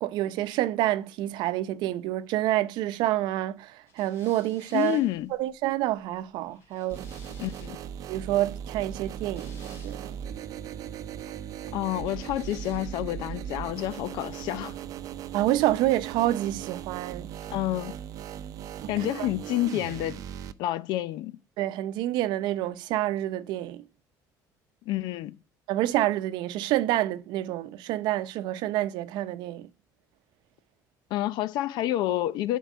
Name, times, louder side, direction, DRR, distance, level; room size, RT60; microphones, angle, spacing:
voice 1, 0.0-5.0 5.3-7.0 8.1-10.2 15.3-17.3 18.8-19.3 21.6-23.8 25.7-29.7, right 14 dB, 85° right, 0.7 m, -28 dB
sound 1, 3.9-8.0 8.9-10.3 12.0-13.2, left 3 dB, 40° left, 3.5 m, -56 dB
voice 2, 4.7-5.3 7.4-7.8 11.7-14.7 17.5-18.0 18.9-20.2 20.6-21.4 24.9-25.4 31.1-32.6, left 14 dB, 75° left, 0.6 m, -29 dB
sound 2, 6.9-20.5, right 9 dB, 50° right, 0.6 m, -38 dB
11.0 x 4.7 x 8.2 m
cardioid pair, 170°, 7 cm